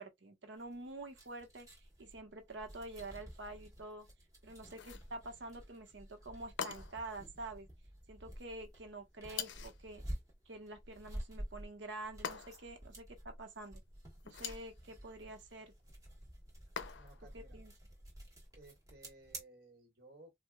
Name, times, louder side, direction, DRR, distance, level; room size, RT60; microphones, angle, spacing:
voice 1, 0.0-1.7 2.0-4.1 4.4-7.7 8.1-10.0 10.5-13.8 14.2-15.7 17.3-17.7, right 2 dB, 85° right, 1.0 m, -47 dB
sound 1, 0.6-19.4, equal, 20° right, 1.2 m, -51 dB
sound 2, 4.7-5.1 6.6-7.1 9.3-9.8 12.2-12.8 14.2-14.7 16.8-17.3, left 7 dB, 80° left, 0.5 m, -43 dB
voice 2, 16.9-17.6 18.5-20.3, right 2 dB, 60° right, 1.6 m, -59 dB
4.5 x 2.3 x 2.2 m
head